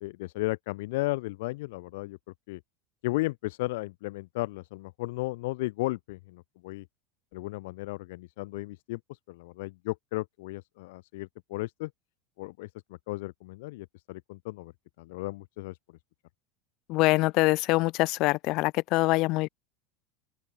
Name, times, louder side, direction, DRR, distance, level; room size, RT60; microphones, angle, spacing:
voice 1, 0.0-2.2 2.5-2.6 3.0-6.8 7.3-11.9 12.4-12.7 13.1-14.7 15.0-15.8, left 21 dB, 75° left, 2.2 m, -34 dB
voice 2, 16.9-19.5, left 21 dB, 55° left, 5.9 m, -24 dB
open air
supercardioid pair, 110°, 0 cm